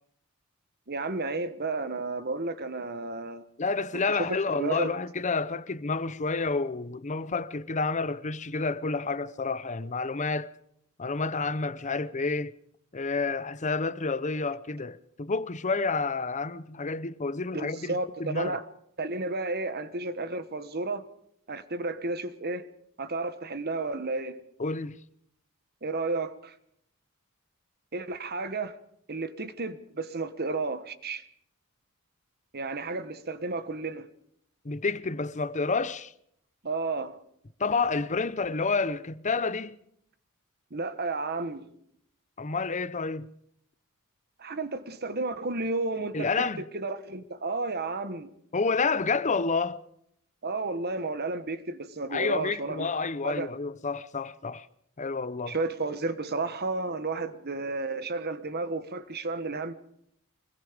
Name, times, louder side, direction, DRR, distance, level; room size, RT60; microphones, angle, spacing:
voice 1, 0.9-3.4 3.9-5.0 17.5-18.7 19.0-21.1 21.5-22.7 23.0-24.4 25.8-26.5 27.9-28.8 29.1-31.3 32.5-34.1 36.6-37.2 40.7-41.7 44.4-48.3 50.4-52.9 53.2-53.5 55.5-59.7, right 3 dB, 45° right, 1.3 m, -32 dB
voice 2, 3.6-10.5 11.0-12.5 12.9-17.9 18.2-18.6 24.6-25.0 34.6-36.1 37.6-39.8 42.4-43.3 46.1-46.6 48.5-49.8 52.1-54.7 55.0-55.6, left 4 dB, 35° left, 0.7 m, -29 dB
25.0 x 21.0 x 5.1 m
head